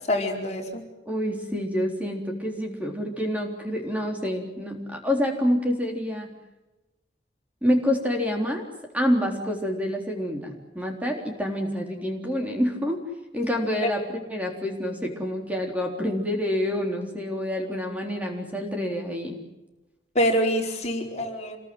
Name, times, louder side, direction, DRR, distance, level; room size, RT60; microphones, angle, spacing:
voice 1, 0.1-0.8 20.1-21.6, equal, 40° left, 1 dB, 4.7 m, -25 dB
voice 2, 1.1-6.3 7.6-8.7 8.9-13.0 13.3-19.4, equal, 10° right, 2 dB, 3.7 m, -27 dB
27.5 x 21.5 x 7.9 m, 1.0 s
head